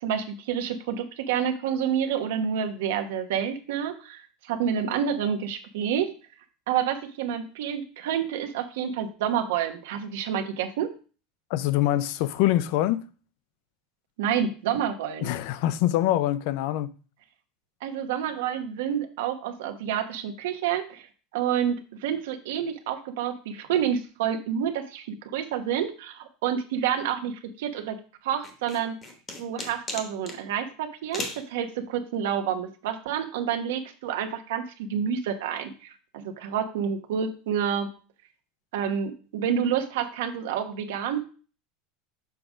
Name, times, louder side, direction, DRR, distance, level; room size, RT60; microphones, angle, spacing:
voice 1, 0.0-6.1 6.7-10.9 14.2-15.3 17.8-21.1 21.3-28.0 28.2-29.0 29.4-37.9 38.7-41.2, right 8 dB, 75° right, 1.0 m, -29 dB
voice 2, 11.5-13.0 15.2-16.9, left 14 dB, 55° left, 0.4 m, -24 dB
sound 1, 28.4-30.4 31.1-31.4, left 2 dB, 20° left, 1.0 m, -35 dB
6.9 x 3.6 x 5.1 m
supercardioid pair, 165°, 0 cm